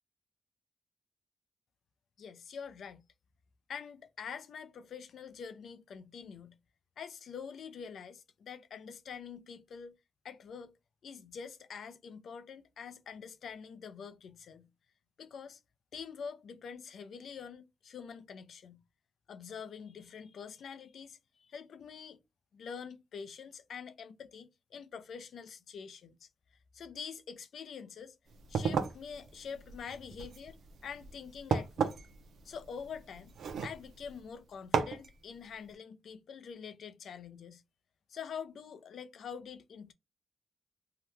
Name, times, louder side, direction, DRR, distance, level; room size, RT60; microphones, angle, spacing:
voice 1, 2.2-3.0 3.7-6.6 7.0-9.9 10.2-10.7 11.0-14.7 15.2-15.6 15.9-18.8 19.3-22.2 22.5-26.3 26.7-28.2 28.5-32.0 32.4-33.3 33.6-37.6 38.1-39.9, left 6 dB, 75° left, 0.5 m, -46 dB
sound 1, 28.3-34.2 34.7-35.1, right 6 dB, 85° right, 0.5 m, -35 dB
2.8 x 2.2 x 3.2 m
cardioid pair, 105°, 0 cm